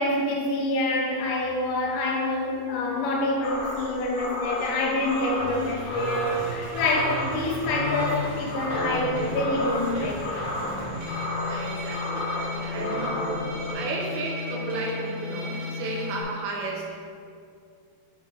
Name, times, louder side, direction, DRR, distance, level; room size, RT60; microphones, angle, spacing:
voice 1, 0.0-10.2, left 2 dB, 90° left, -1 dB, 3.5 m, -26 dB
sound 1, 3.4-13.7, left 1 dB, 70° left, 2.8 m, -33 dB
sound 2, 5.3-16.2, left 2 dB, 50° right, 1.8 m, -33 dB
voice 2, 11.5-13.3 13.7-16.9, right 3 dB, 75° right, -1 dB, 2.8 m, -33 dB
9.3 x 4.4 x 4.5 m, 2.3 s
omnidirectional pair, 5.5 m